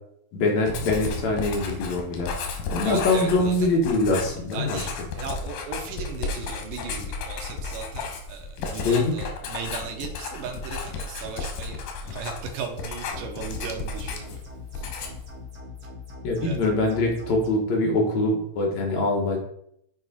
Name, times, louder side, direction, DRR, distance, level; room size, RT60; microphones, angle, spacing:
voice 1, 0.3-2.3 2.7-4.8 8.8-9.3 16.2-19.4, left 2 dB, 65° left, 0 dB, 2.3 m, -23 dB
Writing, 0.7-14.5 14.7-15.3, left 4 dB, 90° left, 2.8 m, -33 dB
voice 2, 2.8-3.7 4.5-14.4 14.8-14.9 16.4-16.7, right 6 dB, 80° right, 4 dB, 2.6 m, -37 dB
sound 1, 13.1-17.5, left 4 dB, 40° right, 1.7 m, -41 dB
7.6 x 4.6 x 4.2 m, 0.73 s
omnidirectional pair, 3.8 m